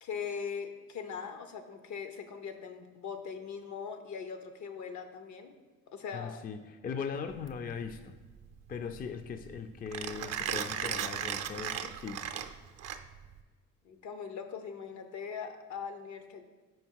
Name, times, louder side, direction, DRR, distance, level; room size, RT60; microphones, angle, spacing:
voice 1, 0.0-5.5 5.9-6.5 13.8-16.4, left 6 dB, 70° left, 7 dB, 0.7 m, -41 dB
voice 2, 6.1-8.1 8.7-12.2, left 6 dB, 30° left, 7 dB, 0.4 m, -39 dB
Mechanisms, 7.3-13.4, right 9 dB, 55° right, 0.5 m, -37 dB
5.2 x 4.5 x 4.6 m, 1.3 s
cardioid pair, 90°, 30 cm